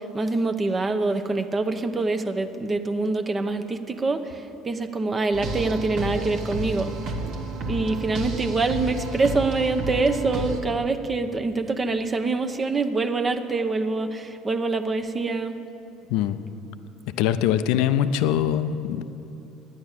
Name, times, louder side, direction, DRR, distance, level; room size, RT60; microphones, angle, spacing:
voice 1, 0.0-6.9 7.7-15.5, right 3 dB, 30° right, 8 dB, 0.7 m, -25 dB
sound 1, 5.3-10.6, right 2 dB, 65° right, 1.3 m, -31 dB
voice 2, 16.1-16.4 17.2-19.0, left 10 dB, 70° left, 12 dB, 0.4 m, -22 dB
10.5 x 9.5 x 7.3 m, 2.8 s
hypercardioid pair, 70°, 0 cm